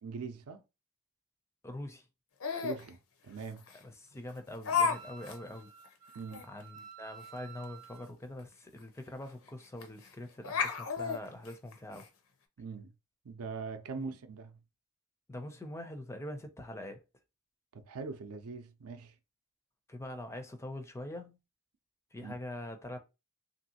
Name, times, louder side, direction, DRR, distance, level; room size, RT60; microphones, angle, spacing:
voice 1, 0.0-0.6 2.6-3.0 3.2-3.7 6.1-6.5 12.6-12.9 13.2-14.6 17.7-19.2 22.2-22.3, right 4 dB, 75° right, 0.5 m, -42 dB
voice 2, 1.6-2.1 3.8-5.7 6.5-12.1 13.9-14.2 15.3-17.0 19.9-21.4 22.1-23.0, left 1 dB, 10° left, 0.4 m, -44 dB
Laughter, 2.4-2.8 3.7-3.8 4.6-5.0 5.2-5.4 5.8-5.9 6.3-6.4 8.4-8.5 8.8-8.9 9.8-10.1 10.4-12.1, left 5 dB, 65° left, 0.6 m, -32 dB
Wind instrument woodwind instrument, 4.9-8.1, right 8 dB, 35° right, 0.7 m, -52 dB
3.0 x 2.6 x 2.8 m
head